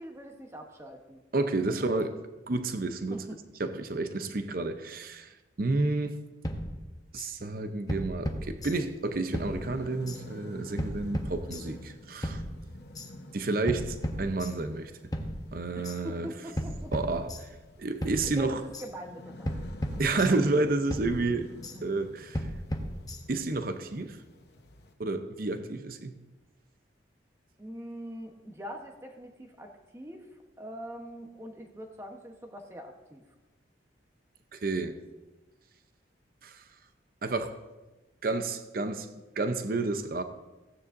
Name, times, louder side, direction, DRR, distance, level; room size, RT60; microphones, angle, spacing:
voice 1, 0.0-1.2 1.8-2.2 3.1-3.2 15.7-16.9 18.2-19.6 19.9-20.0 21.7-21.8 27.6-30.3 30.6-33.2, equal, 15° right, 1.0 m, -43 dB
voice 2, 1.3-2.2 2.5-3.2 3.6-5.3 5.6-6.2 7.1-12.4 13.3-14.9 15.5-16.3 16.9-17.5 17.8-18.6 20.0-21.5 21.8-22.5 23.3-24.2 25.0-26.1 34.5-34.9 36.4-36.6 37.2-37.6 38.2-39.1 39.4-40.2, right 3 dB, 50° right, 0.6 m, -30 dB
sound 1, 6.4-7.3 7.9-9.0 9.3-10.2 10.8-11.9 12.2-13.1 13.7-14.8 15.1-16.0 16.6-17.7 18.0-18.9 19.5-20.6 20.9-21.8 22.3-23.5, equal, 20° left, 0.8 m, -36 dB
sound 2, 8.6-24.9, left 1 dB, 55° left, 0.9 m, -49 dB
15.5 x 9.6 x 2.6 m
head